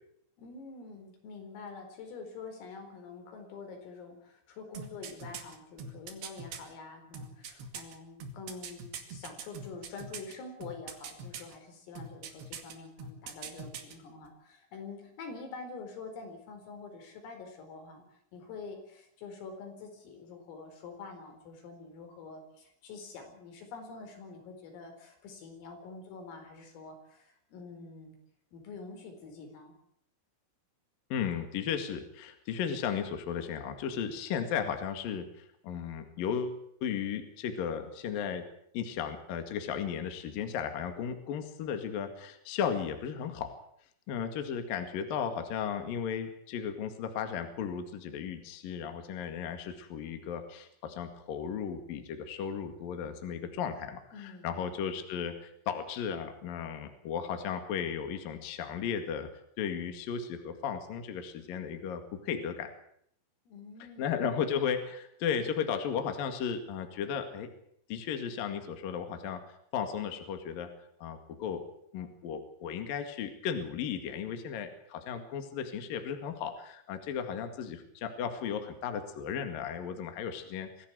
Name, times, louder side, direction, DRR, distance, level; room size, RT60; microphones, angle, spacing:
voice 1, 0.4-28.2 28.5-29.8 54.1-54.5 63.5-64.3, left 4 dB, 80° left, 5 dB, 7.1 m, -46 dB
sound 1, 4.7-6.6 7.1-10.3 10.6-11.5 12.0-12.7 13.0-13.9 14.2-14.3, right 6 dB, 60° right, 3.9 m, -42 dB
voice 2, 31.1-38.4 38.7-43.5 44.1-59.3 59.6-62.7 64.0-67.5 67.9-69.4 69.7-70.7 71.0-71.6 71.9-80.9, left 7 dB, 55° left, 7 dB, 3.2 m, -35 dB
23.5 x 16.0 x 8.2 m, 0.69 s
omnidirectional pair, 5.9 m